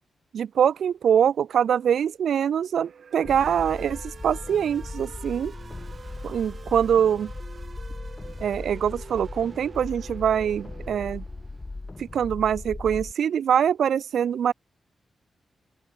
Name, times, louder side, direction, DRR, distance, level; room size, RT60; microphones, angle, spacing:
voice 1, 0.3-5.5 6.2-7.3 8.4-11.2 12.0-14.5, right 8 dB, 75° right, 0.4 m, -24 dB
sound 1, 2.7-11.1, right 7 dB, 55° right, 1.2 m, -49 dB
sound 2, 3.2-13.1, left 3 dB, 20° left, 2.3 m, -38 dB
sound 3, 3.3-12.1, right 4 dB, 30° right, 3.3 m, -51 dB
open air
wide cardioid pair, 145°, 0 cm